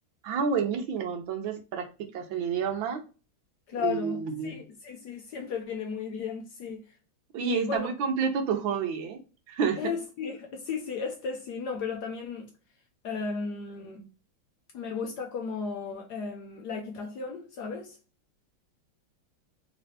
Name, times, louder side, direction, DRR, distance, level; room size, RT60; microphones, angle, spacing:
voice 1, 0.2-3.0 3.8-4.6 7.3-9.2 9.5-10.0, right 6 dB, 75° right, 1.5 m, -29 dB
voice 2, 3.7-6.8 7.4-7.9 9.8-12.5 13.0-14.0 14.7-18.0, left 5 dB, 70° left, 1.1 m, -34 dB
3.8 x 3.2 x 2.7 m
omnidirectional pair, 2.2 m